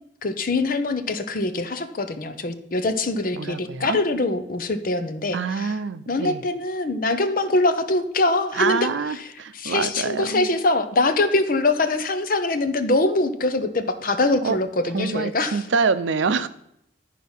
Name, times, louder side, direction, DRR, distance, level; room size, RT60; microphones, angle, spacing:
voice 1, 0.2-5.7 6.1-15.6, left 2 dB, 50° left, 9 dB, 0.7 m, -23 dB
voice 2, 3.3-4.0 5.3-6.4 8.5-10.5 14.4-14.6 14.9-16.5, right 5 dB, 90° right, 13 dB, 0.5 m, -25 dB
11.5 x 4.6 x 5.5 m, 0.78 s
head